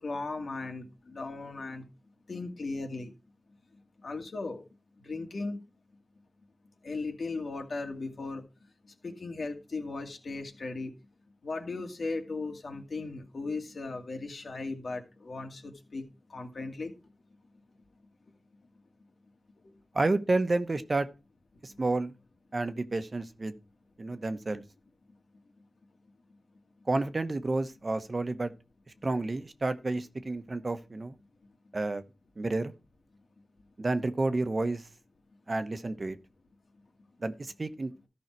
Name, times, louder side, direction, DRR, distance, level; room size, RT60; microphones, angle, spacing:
voice 1, 0.0-1.8 2.3-3.1 4.0-4.6 5.0-5.6 6.8-8.4 9.0-10.9 11.4-16.0 16.3-16.9, left 3 dB, 75° left, 2.3 m, -37 dB
voice 2, 19.9-21.1 21.6-22.1 22.5-23.5 24.0-24.6 26.9-28.5 29.0-31.2 31.7-32.0 32.4-32.7 33.8-34.8 35.5-36.2 37.2-37.9, right 2 dB, 50° right, 1.1 m, -30 dB
13.5 x 5.6 x 4.6 m
cardioid pair, 55°, 0 cm